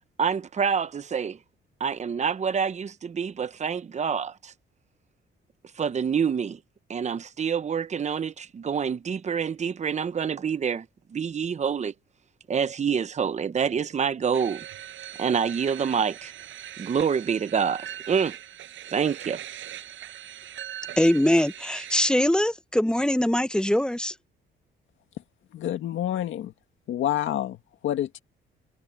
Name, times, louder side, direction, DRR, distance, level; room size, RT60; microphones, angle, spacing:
voice 1, 0.2-1.4 1.8-4.5 5.8-6.6 6.9-10.9 11.1-11.9 12.5-14.6 15.2-16.3 16.8-18.4 18.9-19.4, right 7 dB, 35° right, 0.8 m, -27 dB
sound 1, 14.3-22.1, right 12 dB, 75° right, 6.1 m, -41 dB
voice 2, 21.0-24.1, left 1 dB, 5° left, 0.9 m, -22 dB
voice 3, 25.5-26.5 26.9-28.2, left 11 dB, 75° left, 2.0 m, -28 dB
cardioid pair, 90°, 20 cm